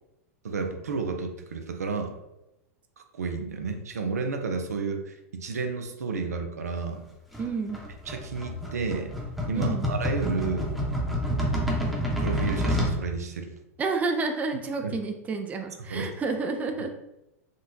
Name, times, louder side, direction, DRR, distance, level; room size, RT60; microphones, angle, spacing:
voice 1, 0.4-2.1 3.1-7.0 8.1-9.1 9.5-10.8 11.3-11.8 12.2-13.5 14.8-14.9 15.9-16.1, right 4 dB, 80° right, 5 dB, 0.5 m, -31 dB
sound 1, 7.3-13.0, equal, ahead, 0.8 m, -28 dB
voice 2, 7.4-7.8 9.5-9.9 13.8-16.9, right 4 dB, 20° right, 5 dB, 0.4 m, -30 dB
3.8 x 2.2 x 2.6 m, 0.89 s
hypercardioid pair, 100°, 8 cm